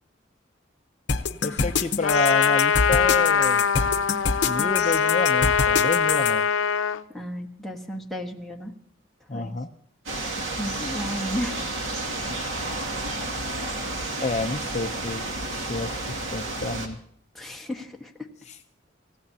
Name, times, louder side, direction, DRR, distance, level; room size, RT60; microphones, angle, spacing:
sound 1, 1.1-6.3, left 5 dB, 60° left, 0.9 m, -26 dB
voice 1, 1.4-3.7 4.4-6.5 9.3-9.7 14.2-15.2 15.5-17.0 18.5-18.6, left 3 dB, 35° left, 6 dB, 0.6 m, -29 dB
Trumpet, 2.0-7.0, left 6 dB, 85° left, 0.6 m, -22 dB
voice 2, 7.1-8.7 9.3-9.5 10.6-11.6 17.3-18.3, equal, ahead, 0 dB, 1.4 m, -33 dB
sound 2, 10.1-16.9, right 2 dB, 80° right, 2.2 m, -31 dB
28.5 x 15.5 x 2.8 m, 0.64 s
head